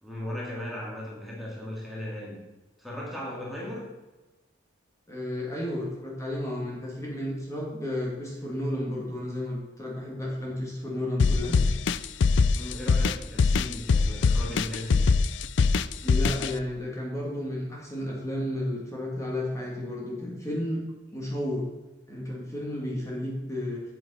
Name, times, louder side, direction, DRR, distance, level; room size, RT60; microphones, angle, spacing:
voice 1, 0.0-2.4 2.8-3.8 12.5-15.1, left 1 dB, ahead, -5 dB, 2.3 m, -37 dB
voice 2, 5.1-11.7 16.0-20.8 21.1-21.6 22.1-23.8, left 1 dB, 15° left, -4 dB, 2.3 m, -32 dB
sound 1, 11.2-16.5, left 4 dB, 90° left, 0.4 m, -22 dB
9.3 x 8.2 x 4.3 m, 1.1 s
head